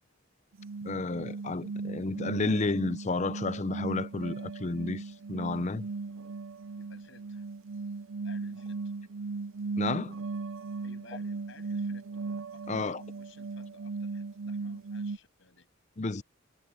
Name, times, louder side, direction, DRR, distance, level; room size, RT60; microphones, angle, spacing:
sound 1, 0.5-15.2, right 4 dB, 70° right, 0.5 m, -37 dB
voice 1, 0.8-5.9 9.8-10.2 12.7-13.0 16.0-16.2, left 3 dB, 35° left, 0.6 m, -31 dB
voice 2, 6.7-7.4 8.2-8.8 10.8-12.2 12.5-15.7, left 3 dB, 60° left, 8.0 m, -57 dB
head